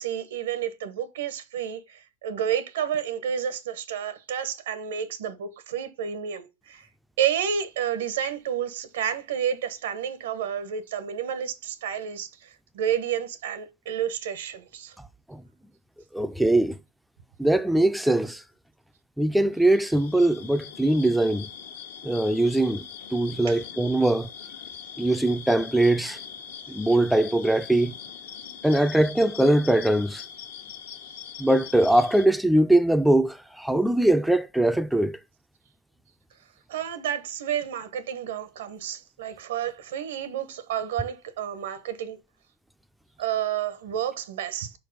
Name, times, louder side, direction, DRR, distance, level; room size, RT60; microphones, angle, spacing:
voice 1, 0.0-6.9 7.2-15.0 23.5-23.6 36.7-42.2 43.2-44.7, right 9 dB, 90° right, 1.1 m, -30 dB
voice 2, 16.1-16.8 17.4-18.4 19.2-21.5 22.0-22.9 23.1-24.3 25.0-26.2 26.7-27.9 28.6-30.2 31.4-35.2, right 1 dB, ahead, 0.3 m, -21 dB
sound 1, 19.6-32.3, left 8 dB, 85° left, 1.1 m, -42 dB
4.6 x 4.3 x 5.4 m
supercardioid pair, 145°, 0 cm